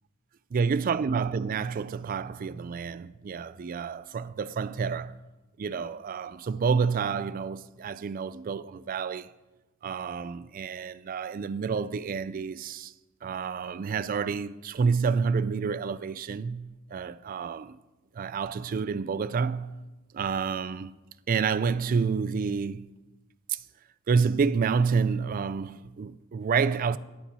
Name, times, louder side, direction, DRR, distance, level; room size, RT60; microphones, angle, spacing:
voice 1, 0.5-5.2 5.6-9.3 9.8-12.9 13.2-17.8 18.1-19.8 20.1-20.9 21.3-22.9 23.5-23.6 24.1-27.0, right 5 dB, 45° right, 0.3 m, -29 dB
12.0 x 5.4 x 6.2 m
head